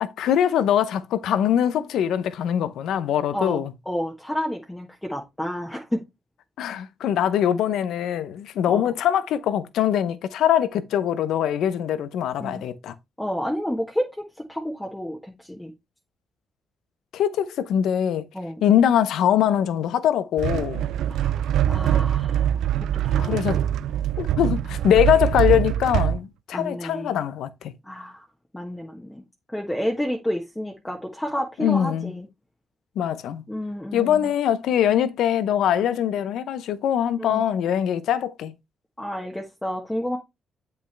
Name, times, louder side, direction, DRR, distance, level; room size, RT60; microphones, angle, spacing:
voice 1, 0.0-3.7 6.6-12.9 17.1-18.2 18.6-20.9 23.2-23.6 24.2-27.7 31.6-32.1 33.0-33.4 33.9-38.5, left 10 dB, 80° left, 0.7 m, -22 dB
voice 2, 3.3-6.0 8.7-8.9 12.4-12.6 13.2-15.7 18.3-18.6 21.1-23.4 24.4-24.6 26.5-27.2 27.8-28.3 28.5-29.2 29.5-32.3 33.5-34.3 37.2-37.4 39.0-40.2, equal, 10° left, 1.2 m, -30 dB
sound 1, 20.4-26.2, right 11 dB, 80° right, 0.3 m, -23 dB
7.8 x 5.8 x 3.3 m
cardioid pair, 90°, 0 cm